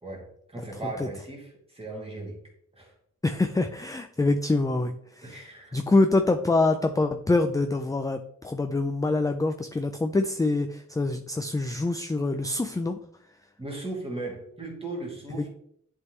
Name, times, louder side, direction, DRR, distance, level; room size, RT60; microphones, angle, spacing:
voice 1, 0.0-2.4 2.8-2.9 5.2-5.8 13.6-15.5, right 2 dB, 20° right, -2 dB, 2.2 m, -37 dB
voice 2, 3.2-5.4 5.7-13.0 15.3-15.5, left 2 dB, 10° left, 7 dB, 0.3 m, -25 dB
10.5 x 3.7 x 3.1 m, 0.69 s
wide cardioid pair, 125°, 30 cm